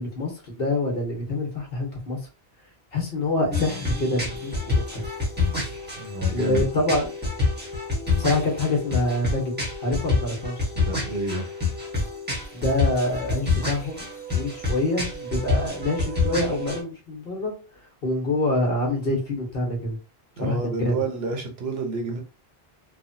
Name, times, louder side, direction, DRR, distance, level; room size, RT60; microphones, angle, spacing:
voice 1, 0.0-2.2 2.9-5.0 6.3-7.1 8.2-9.5 9.8-10.7 12.5-14.1 14.3-17.5 18.0-20.0 20.4-21.0, left 2 dB, 60° left, 0 dB, 1.2 m, -26 dB
sound 1, 3.5-16.8, left 3 dB, 10° right, 0.9 m, -27 dB
voice 2, 6.0-6.7 10.8-11.5 20.4-22.2, right 3 dB, 70° right, 1 dB, 1.0 m, -29 dB
3.1 x 2.1 x 2.6 m, 0.34 s
omnidirectional pair, 1.1 m